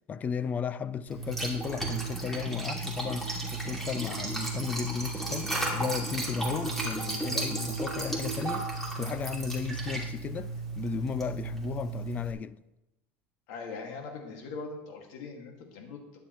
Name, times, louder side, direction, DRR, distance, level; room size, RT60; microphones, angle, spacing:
voice 1, 0.1-12.6, left 6 dB, 25° left, 0.4 m, -35 dB
Liquid, 1.1-12.3, right 2 dB, 5° left, 2.5 m, -34 dB
voice 2, 13.5-16.2, left 4 dB, 65° left, 2.0 m, -41 dB
13.0 x 10.5 x 3.1 m
supercardioid pair, 135°, 6 cm